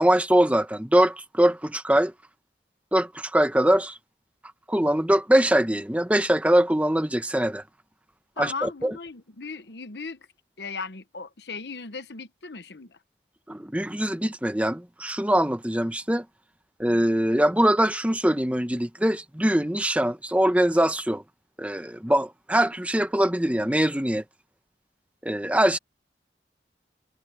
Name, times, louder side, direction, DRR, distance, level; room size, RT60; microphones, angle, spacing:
voice 1, 0.0-2.1 2.9-4.0 4.7-7.6 8.4-8.9 13.5-16.2 16.8-21.2 21.6-24.2 25.2-25.8, right 1 dB, 10° right, 1.0 m, -22 dB
voice 2, 8.4-10.2 10.6-13.0, left 4 dB, 70° left, 1.0 m, -37 dB
head